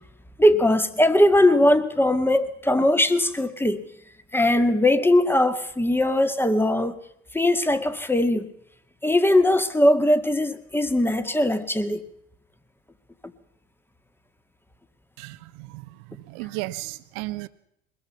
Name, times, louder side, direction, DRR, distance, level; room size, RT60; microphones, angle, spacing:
voice 1, 0.4-3.8 4.3-7.0 7.3-8.5 9.0-12.0, left 1 dB, 5° left, 1.8 m, -20 dB
voice 2, 15.2-17.5, right 20 dB, 60° right, 1.3 m, -35 dB
23.0 x 21.0 x 5.7 m
hypercardioid pair, 80°, 37 cm